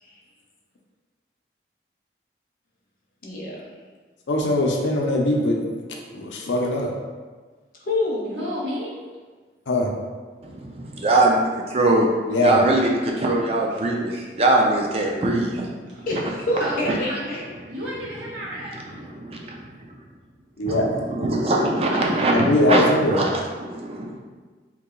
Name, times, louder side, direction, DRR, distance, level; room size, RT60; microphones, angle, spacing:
voice 1, 3.2-3.7 7.8-8.4 16.1-17.5, left 1 dB, 50° left, -2 dB, 0.7 m, -27 dB
voice 2, 4.3-5.6 6.1-6.9 9.7-9.9 12.3-12.6 20.6-20.9 22.3-23.2, left 1 dB, 90° left, 1 dB, 0.6 m, -21 dB
voice 3, 8.3-8.9 14.1-14.2 16.0-16.1 16.6-17.4 17.7-18.8 21.9-23.0, equal, 80° right, -8 dB, 1.3 m, -32 dB
voice 4, 10.4-12.1 12.4-16.0 16.6-16.7 17.7-17.8 18.7-20.0 20.6-24.2, right 2 dB, 35° right, 0 dB, 0.4 m, -22 dB
2.9 x 2.7 x 3.8 m, 1.4 s
head